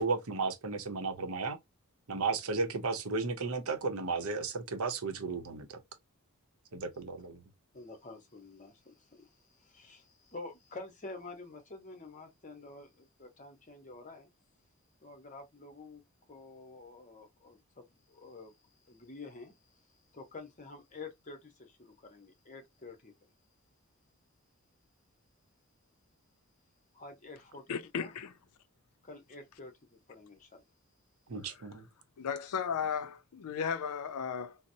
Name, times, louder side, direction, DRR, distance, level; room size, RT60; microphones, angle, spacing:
voice 1, 0.0-1.6 2.1-5.8 6.7-7.4 31.3-31.8, right 4 dB, 70° right, 0.7 m, -34 dB
voice 2, 7.7-14.3 15.0-16.0 16.3-18.5 18.9-19.5 20.1-23.1 26.9-27.6 28.0-28.1 29.0-30.6, left 3 dB, 35° left, 0.8 m, -49 dB
voice 3, 27.7-28.3 31.4-31.7 32.2-34.6, left 7 dB, 85° left, 0.4 m, -35 dB
4.0 x 2.0 x 2.6 m
head